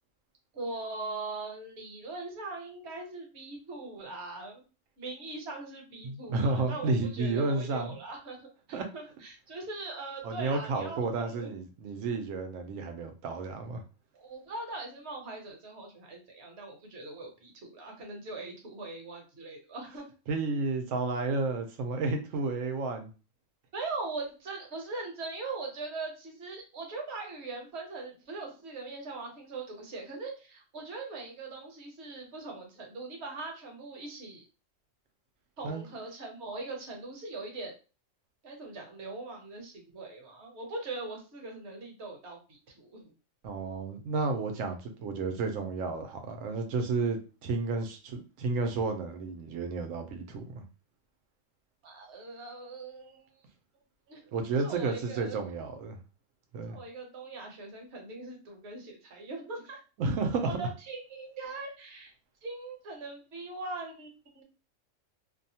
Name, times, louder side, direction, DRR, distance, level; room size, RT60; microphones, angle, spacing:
voice 1, 0.5-4.6 5.0-8.4 8.7-11.5 14.1-20.1 23.7-34.4 35.6-37.7 38.4-43.0 51.8-53.4 54.1-55.4 56.7-59.8 60.4-62.1 62.4-64.1 64.3-64.4, right 3 dB, 60° right, 1 dB, 1.1 m, -41 dB
voice 2, 6.0-7.9 8.7-8.9 10.2-13.8 20.3-23.1 35.6-35.8 43.4-50.6 54.3-56.0 56.5-56.8 60.0-60.5, right 3 dB, 80° right, 5 dB, 1.0 m, -31 dB
2.6 x 2.2 x 2.7 m, 0.33 s
omnidirectional pair, 1.3 m